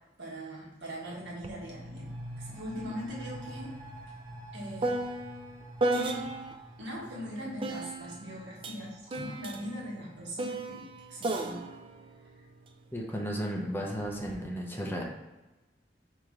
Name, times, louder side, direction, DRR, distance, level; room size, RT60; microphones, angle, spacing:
voice 1, 0.2-3.8 4.5-5.0 5.9-6.3 6.8-11.6, equal, 75° right, -3 dB, 1.5 m, -40 dB
sound 1, 1.1-10.5 10.8-10.9, equal, 60° right, 1.6 m, -47 dB
sound 2, 1.4-1.6 1.9-6.7 7.6-13.2 14.0-14.4, right 2 dB, 30° right, 0.4 m, -35 dB
voice 2, 12.9-15.0, equal, 10° left, -1 dB, 0.6 m, -34 dB
5.0 x 2.9 x 3.7 m, 1.1 s
head